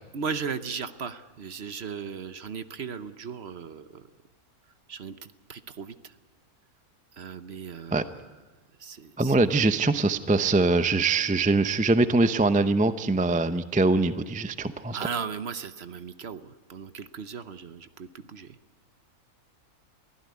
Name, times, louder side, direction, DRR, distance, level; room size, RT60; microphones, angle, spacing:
voice 1, 0.1-4.1 4.9-5.9 7.2-8.1 8.8-9.5 14.9-18.6, right 6 dB, 50° right, 12 dB, 1.0 m, -37 dB
voice 2, 9.2-15.0, right 3 dB, 10° right, 12 dB, 0.3 m, -23 dB
23.5 x 16.0 x 9.5 m, 1.3 s
omnidirectional pair, 1.6 m